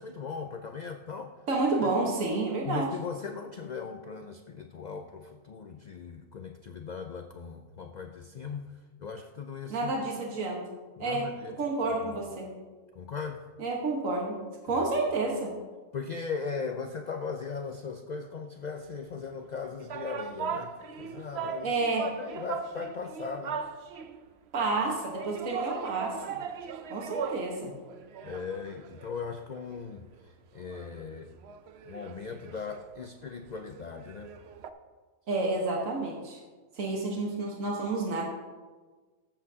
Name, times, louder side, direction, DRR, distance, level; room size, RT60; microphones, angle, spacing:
voice 1, 0.0-1.3 1.8-1.9 2.7-8.7 9.0-9.9 11.0-11.6 11.8-12.2 13.0-13.4 14.7-14.8 15.9-21.8 22.2-23.6 28.2-30.1 30.5-31.3 31.9-34.3, left 5 dB, 70° left, 6 dB, 0.4 m, -38 dB
voice 2, 1.5-2.9 9.7-10.6 11.0-12.5 13.6-14.4 14.6-15.5 21.6-22.1 24.5-26.4 26.9-27.7 35.3-36.4 36.7-38.2, right 3 dB, 80° right, -1 dB, 1.7 m, -30 dB
sound 1, 19.4-24.3 25.2-27.6 27.9-29.8 30.1-30.2 30.6-34.7, right 6 dB, 65° right, 0.7 m, -39 dB
14.0 x 7.5 x 2.8 m, 1.3 s
omnidirectional pair, 1.4 m